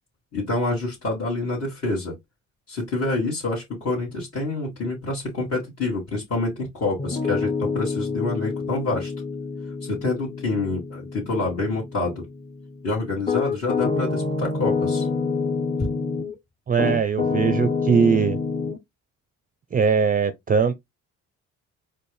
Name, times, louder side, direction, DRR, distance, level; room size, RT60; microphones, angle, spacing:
voice 1, 0.3-2.2 2.7-9.1 9.8-12.2 12.8-15.1, left 2 dB, 55° left, 2.1 m, -27 dB
Piano, 7.0-16.3 16.8-18.8, left 4 dB, 20° left, 0.7 m, -27 dB
voice 2, 16.7-18.4 19.7-20.8, right 6 dB, 30° right, 0.5 m, -20 dB
4.4 x 2.5 x 3.3 m
cardioid pair, 90°, 30 cm